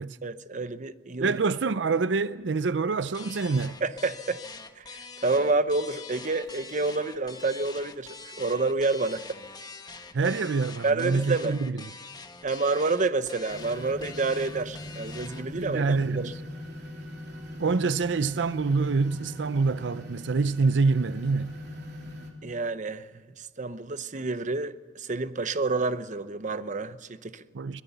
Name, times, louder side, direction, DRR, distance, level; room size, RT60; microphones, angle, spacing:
voice 1, 0.2-1.4 3.8-4.4 4.8-9.4 10.8-11.6 12.4-16.3 22.4-27.4, right 3 dB, 45° right, 0.8 m, -29 dB
voice 2, 1.2-3.8 10.1-11.8 15.5-16.4 17.6-21.6 27.5-27.8, right 4 dB, 80° right, 0.6 m, -26 dB
sound 1, 3.1-15.5, left 4 dB, 25° left, 1.3 m, -44 dB
sound 2, 13.5-22.3, equal, 65° right, 3.3 m, -41 dB
23.0 x 18.5 x 7.0 m
head